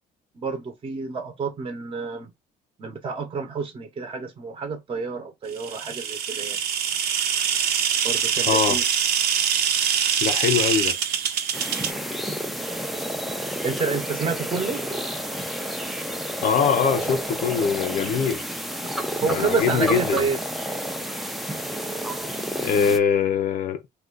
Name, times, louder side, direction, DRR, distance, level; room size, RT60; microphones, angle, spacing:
voice 1, 0.4-2.3 2.8-6.6 8.0-8.8 13.6-14.9 19.2-20.4, right 4 dB, 30° right, 0.8 m, -29 dB
sound 1, 5.6-11.9, right 8 dB, 70° right, 0.7 m, -24 dB
voice 2, 8.4-8.8 10.2-11.0 16.4-18.4 19.3-20.2 22.6-23.8, left 7 dB, 60° left, 0.6 m, -22 dB
sound 2, 11.5-23.0, equal, ahead, 0.4 m, -30 dB
2.5 x 2.3 x 3.7 m
cardioid pair, 110°, 17 cm